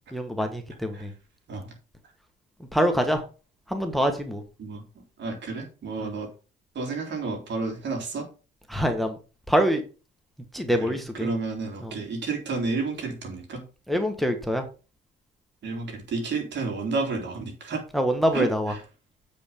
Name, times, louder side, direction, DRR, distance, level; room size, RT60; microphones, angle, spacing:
voice 1, 0.1-1.1 2.7-3.2 3.7-4.4 6.0-6.1 8.7-9.2 9.5-9.8 10.5-11.3 11.8-11.9 13.9-14.6 17.9-18.7, equal, ahead, 6 dB, 1.5 m, -25 dB
voice 2, 5.2-6.3 6.8-8.3 10.8-13.6 15.6-17.8 18.3-18.5, right 4 dB, 65° right, 3 dB, 3.6 m, -31 dB
8.3 x 5.4 x 5.3 m, 0.34 s
cardioid pair, 90°, 20 cm